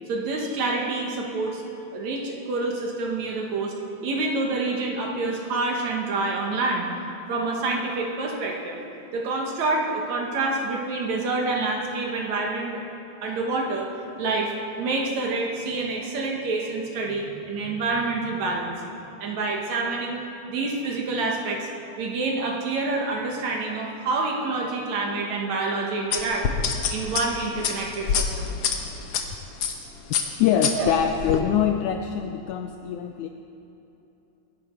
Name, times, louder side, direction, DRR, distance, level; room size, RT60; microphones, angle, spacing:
voice 1, 0.1-1.6 1.9-3.7 4.0-6.9 7.3-8.8 9.1-12.8 13.2-13.9 14.2-18.8 19.2-20.2 20.5-21.7 22.0-26.5 26.9-28.5 30.7-30.9, right 3 dB, 60° right, 0 dB, 2.4 m, -27 dB
sound 1, 26.1-29.2 29.6-29.8 30.1-31.4, left 7 dB, 65° left, 1.6 m, -26 dB
voice 2, 30.4-33.3, left 9 dB, 80° left, 6 dB, 1.7 m, -24 dB
22.5 x 11.0 x 4.5 m, 2.9 s
omnidirectional pair, 4.0 m